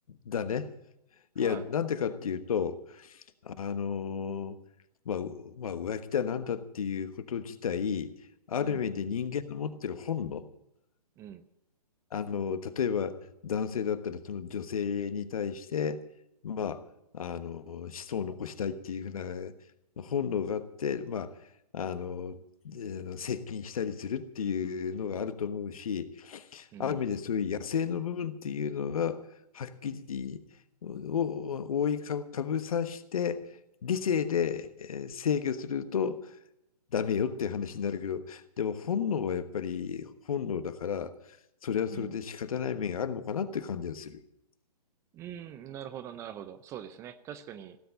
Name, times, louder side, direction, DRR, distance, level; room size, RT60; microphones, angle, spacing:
voice 1, 0.1-0.7 1.3-4.6 5.0-8.1 8.5-10.5 12.1-16.0 16.4-16.8 17.1-19.5 20.0-21.4 21.7-29.2 29.5-30.4 30.8-33.5 33.8-36.3 36.9-41.1 41.6-44.2, left 7 dB, 60° left, 11 dB, 1.3 m, -32 dB
voice 2, 11.2-11.5 26.7-27.1 41.9-42.2 45.1-47.8, right 10 dB, 15° right, 12 dB, 0.5 m, -43 dB
17.0 x 8.0 x 8.6 m, 0.83 s
figure-of-eight pair, 135°, 21 cm